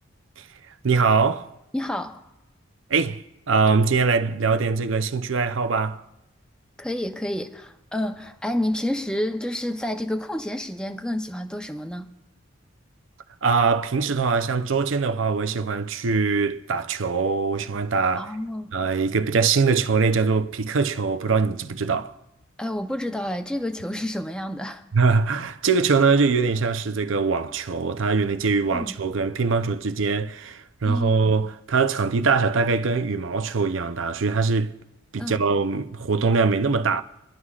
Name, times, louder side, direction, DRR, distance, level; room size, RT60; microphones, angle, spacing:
voice 1, 0.8-1.5 2.9-3.2 3.5-6.0 13.4-18.3 18.7-22.1 24.9-34.7 35.1-37.0, right 4 dB, 70° right, 0.6 m, -22 dB
voice 2, 1.7-2.2 6.8-12.1 18.2-18.7 22.6-24.8 28.7-29.0 30.8-31.4 35.2-35.4, left 1 dB, 5° left, 0.6 m, -29 dB
26.0 x 11.0 x 2.4 m
head